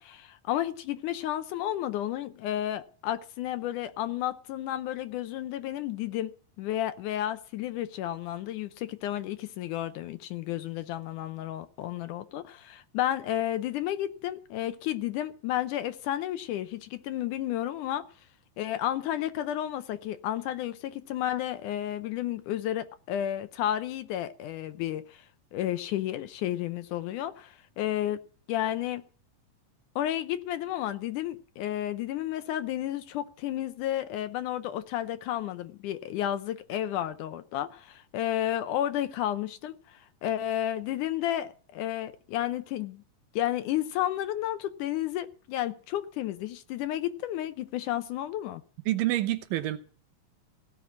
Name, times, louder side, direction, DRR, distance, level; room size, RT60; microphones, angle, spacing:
voice 1, 0.0-6.3 6.6-18.0 18.6-25.2 25.5-28.2 28.5-29.0 30.0-43.0 43.4-48.6, left 12 dB, 75° left, 2.1 m, -32 dB
voice 2, 48.9-49.8, right 15 dB, 80° right, 2.6 m, -27 dB
16.5 x 5.9 x 9.5 m
omnidirectional pair, 3.9 m